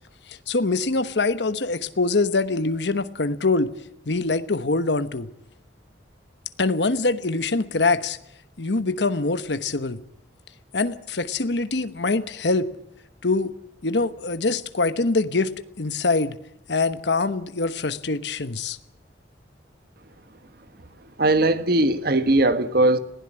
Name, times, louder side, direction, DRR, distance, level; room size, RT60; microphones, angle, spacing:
voice 1, 0.3-3.7 4.1-5.3 6.6-8.2 8.6-10.0 10.7-12.7 13.2-13.5 13.8-15.5 15.8-16.4 16.7-18.8, left 3 dB, 70° left, 1.1 m, -24 dB
voice 2, 21.2-23.0, right 2 dB, 60° right, 1.3 m, -19 dB
20.5 x 16.0 x 8.8 m
head